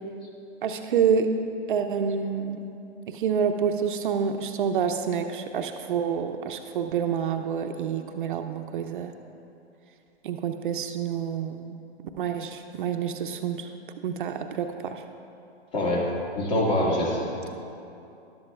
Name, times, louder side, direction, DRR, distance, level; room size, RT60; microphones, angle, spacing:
voice 1, 0.6-1.3 1.7-2.8 3.1-9.1 10.2-11.8 12.2-13.7 14.0-15.0, right 7 dB, 50° right, 6 dB, 0.5 m, -28 dB
voice 2, 15.7-17.5, left 1 dB, 35° left, -2 dB, 2.0 m, -25 dB
13.0 x 11.5 x 2.4 m, 2.7 s
hypercardioid pair, 150°, 34 cm